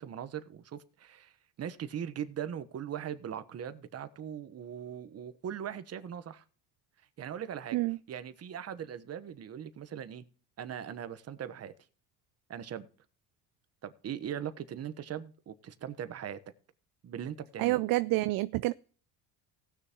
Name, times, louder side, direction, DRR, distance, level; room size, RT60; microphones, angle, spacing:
voice 1, 0.0-1.3 1.6-6.4 7.2-7.8 8.1-10.2 10.6-11.7 12.5-12.9 13.8-16.4 17.0-17.8, right 9 dB, 40° right, 1.1 m, -40 dB
voice 2, 17.6-18.7, right 19 dB, 60° right, 0.5 m, -28 dB
18.0 x 6.6 x 3.0 m
cardioid pair, 110°, 38 cm